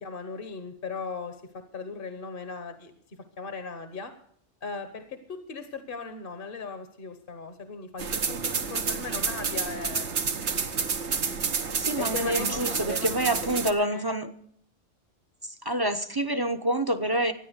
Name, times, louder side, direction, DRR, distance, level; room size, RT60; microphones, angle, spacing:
voice 1, 0.0-4.1 4.6-10.1 12.0-14.1, left 4 dB, 50° left, 9 dB, 1.3 m, -38 dB
sound 1, 8.0-13.7, right 5 dB, 80° right, 1.4 m, -29 dB
voice 2, 11.8-14.3 15.4-17.3, right 1 dB, 25° right, 8 dB, 0.7 m, -27 dB
13.5 x 9.9 x 8.0 m, 0.63 s
omnidirectional pair, 1.2 m